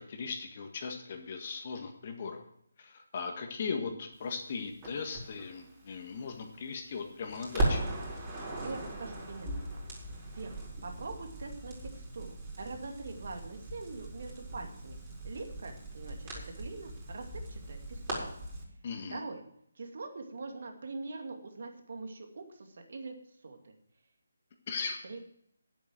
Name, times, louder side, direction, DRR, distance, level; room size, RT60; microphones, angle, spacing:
voice 1, 0.0-2.4 2.8-7.8 18.8-19.2 24.7-25.0, left 5 dB, 40° left, 4 dB, 1.7 m, -38 dB
Crackle, 4.8-7.0 7.3-18.6, right 1 dB, 25° right, 4.5 m, -38 dB
voice 2, 8.6-9.5 10.3-12.3 12.6-15.0 15.2-18.2 19.1-19.4 19.8-23.7 25.0-25.2, right 3 dB, 55° right, 4 dB, 2.4 m, -43 dB
10.0 x 8.0 x 7.6 m, 0.69 s
figure-of-eight pair, 155°, 0 cm